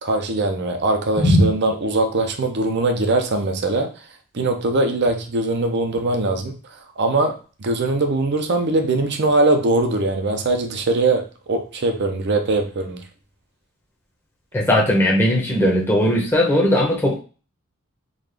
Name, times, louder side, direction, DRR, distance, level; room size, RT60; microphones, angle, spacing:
voice 1, 0.0-3.9 4.3-6.5 7.0-13.0, right 2 dB, 50° right, 4 dB, 0.6 m, -21 dB
voice 2, 1.2-1.5 14.5-17.2, equal, 10° left, -2 dB, 0.8 m, -17 dB
3.9 x 2.4 x 3.3 m, 0.36 s
head